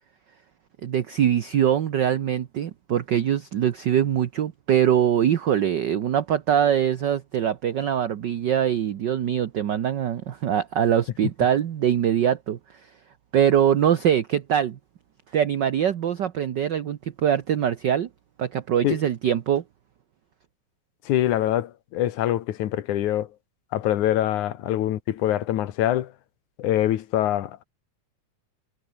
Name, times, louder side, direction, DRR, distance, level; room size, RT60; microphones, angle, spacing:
voice 1, 0.8-12.6 13.3-14.8 15.3-18.1 18.4-19.6, right 9 dB, 70° right, 1.0 m, -23 dB
voice 2, 21.1-23.3 23.7-26.1 26.6-27.6, left 12 dB, 90° left, 2.7 m, -24 dB
omnidirectional pair, 3.3 m